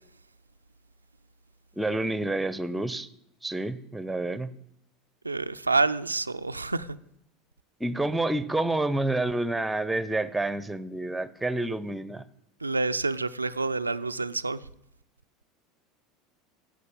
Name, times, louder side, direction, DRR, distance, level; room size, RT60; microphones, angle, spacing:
voice 1, 1.8-3.1 3.4-4.5 7.8-12.2, right 2 dB, 5° right, 0.7 m, -28 dB
voice 2, 5.2-7.0 12.6-14.6, right 3 dB, 85° right, 0.4 m, -28 dB
11.0 x 7.7 x 8.3 m
figure-of-eight pair, 75°, 0 cm